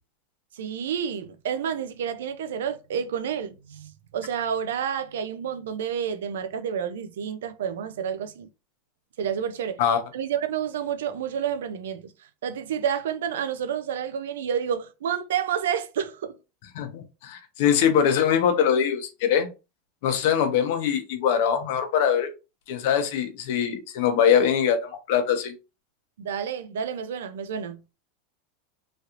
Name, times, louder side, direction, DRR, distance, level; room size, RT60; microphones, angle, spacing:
voice 1, 0.5-8.5 9.2-9.8 10.1-12.1 12.4-16.3 26.2-28.0, right 8 dB, 85° right, 0.5 m, -29 dB
voice 2, 16.7-19.5 20.0-22.3 22.7-25.5, left 8 dB, 70° left, 0.8 m, -22 dB
3.1 x 2.9 x 2.4 m
supercardioid pair, 120°, 0 cm